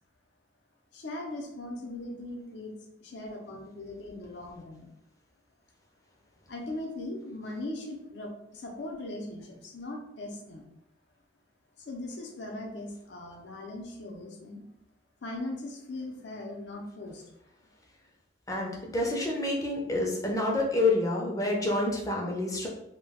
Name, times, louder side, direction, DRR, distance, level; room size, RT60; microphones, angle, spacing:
voice 1, 0.9-2.7 3.0-4.9 6.5-10.6 11.9-14.6 15.2-17.2, left 1 dB, 65° left, 0 dB, 0.6 m, -39 dB
voice 2, 18.5-22.7, left 2 dB, 20° left, -1 dB, 0.5 m, -28 dB
2.2 x 2.2 x 3.4 m, 0.84 s
head